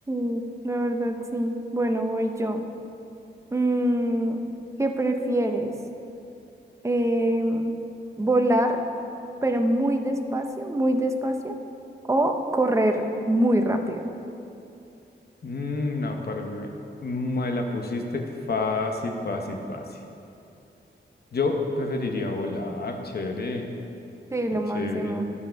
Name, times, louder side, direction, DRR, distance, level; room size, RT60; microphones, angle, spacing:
voice 1, 0.1-2.6 3.5-4.4 4.8-5.7 6.8-7.7 8.2-8.8 9.4-11.5 12.1-14.0 24.3-25.3, right 1 dB, 15° right, 5 dB, 0.7 m, -24 dB
voice 2, 15.4-16.7 17.0-20.0 21.3-23.6 24.7-25.2, left 3 dB, 55° left, 3 dB, 1.0 m, -29 dB
11.5 x 6.9 x 5.2 m, 2.8 s
wide cardioid pair, 125°, 19 cm